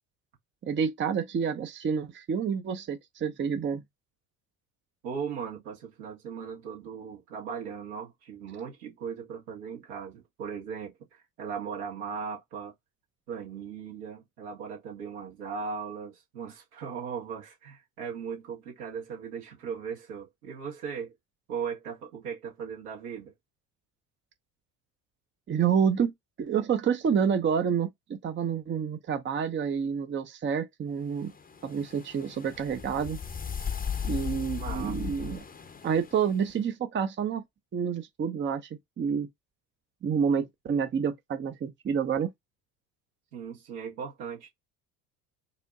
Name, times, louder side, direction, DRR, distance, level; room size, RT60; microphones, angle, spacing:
voice 1, 0.6-3.8 25.5-26.1 26.4-31.3 31.6-33.2 34.0-35.4 35.8-37.4 37.7-38.6 39.0-39.3 40.0-42.3, right 7 dB, 25° right, 0.8 m, -28 dB
voice 2, 5.0-12.7 13.3-21.1 21.5-23.3 34.6-35.0 43.3-44.5, right 6 dB, 70° right, 1.8 m, -38 dB
sound 1, 31.2-36.5, left 7 dB, 20° left, 0.9 m, -37 dB
5.0 x 2.6 x 2.6 m
figure-of-eight pair, 60°, 47 cm